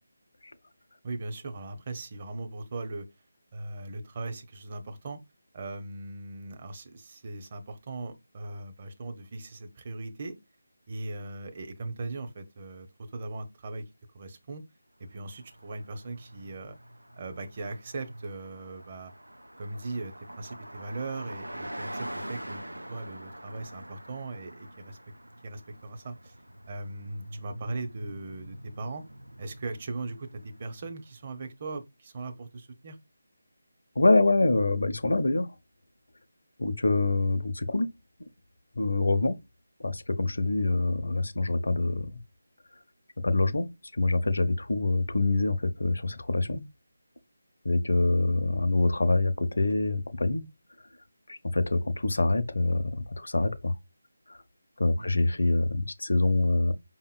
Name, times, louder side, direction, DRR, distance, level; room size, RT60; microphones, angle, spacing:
voice 1, 1.0-3.0 3.5-5.2 5.5-10.3 10.9-12.9 13.1-13.8 14.1-14.6 15.0-16.8 17.2-19.1 19.6-22.6 22.9-25.0 25.4-26.4 26.7-29.0 29.4-33.0 55.0-55.1, right 3 dB, 35° right, 0.8 m, -39 dB
Car passing by, 15.2-31.2, right 1 dB, 90° right, 0.6 m, -44 dB
voice 2, 34.0-35.5 36.6-37.9 38.8-39.4 39.8-42.1 43.2-43.7 43.9-46.6 47.6-50.4 51.3-53.7 54.3-54.4 54.8-56.7, left 2 dB, 65° left, 0.6 m, -25 dB
5.2 x 2.9 x 2.4 m
figure-of-eight pair, 160°, 0 cm